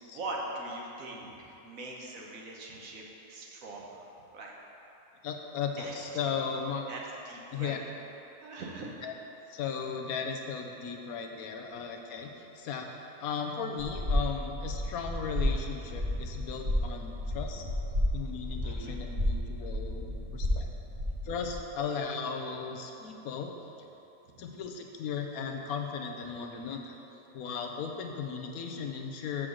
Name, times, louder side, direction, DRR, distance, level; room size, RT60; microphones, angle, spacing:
voice 1, 0.0-3.0 3.3-4.1 4.3-4.5 5.8-6.3 6.9-7.0 7.2-7.8 8.4-8.9 11.7-11.8 18.6-19.0 20.5-20.6 24.3-24.4, right 2 dB, 60° right, -2 dB, 1.3 m, -42 dB
voice 2, 5.2-6.9 7.5-7.8 9.0-9.1 9.5-17.6 18.1-20.7 21.2-23.5 24.4-27.0 27.3-29.5, left 6 dB, 70° left, 3 dB, 1.1 m, -36 dB
sound 1, 13.8-21.5, left 1 dB, 35° right, 2.3 m, -32 dB
7.5 x 4.8 x 6.2 m, 3.0 s
omnidirectional pair, 1.6 m